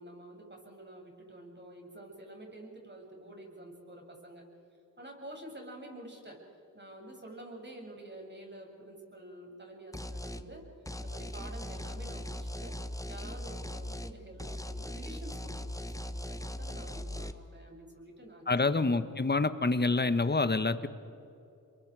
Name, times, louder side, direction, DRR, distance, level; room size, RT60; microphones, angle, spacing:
voice 1, 0.0-4.4 5.0-10.6 11.0-12.8 13.1-18.8, right 1 dB, 25° right, 0 dB, 7.5 m, -48 dB
sound 1, 9.9-10.5 10.9-14.1 14.4-17.3, left 1 dB, 10° left, 1.3 m, -39 dB
voice 2, 18.5-20.9, left 3 dB, 25° left, 12 dB, 1.4 m, -27 dB
28.5 x 23.0 x 5.0 m, 2.8 s
supercardioid pair, 40°, 38 cm